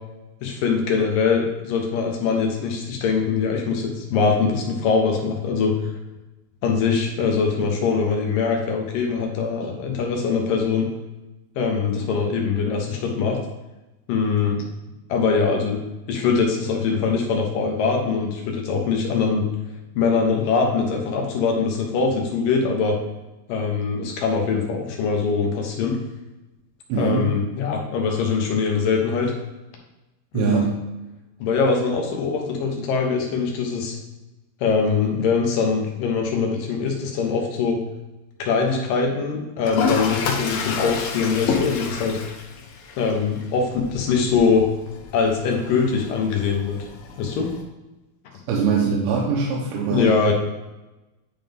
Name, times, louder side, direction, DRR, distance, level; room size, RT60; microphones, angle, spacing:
voice 1, 0.4-5.9 6.6-10.9 11.6-13.4 14.1-14.6 15.1-15.8 16.1-19.4 20.0-23.0 23.5-26.0 27.0-29.3 30.3-30.7 31.4-34.0 34.6-37.8 38.4-42.2 43.0-44.6 45.1-46.8 47.2-47.5 49.9-50.3, left 5 dB, 70° left, 1 dB, 2.5 m, -22 dB
voice 2, 26.9-27.3 30.3-30.8 48.5-50.2, right 6 dB, 85° right, -2 dB, 2.8 m, -22 dB
Toilet flush, 39.6-47.6, left 5 dB, 85° left, 2.9 m, -29 dB
10.5 x 3.8 x 3.5 m, 1.0 s
omnidirectional pair, 4.3 m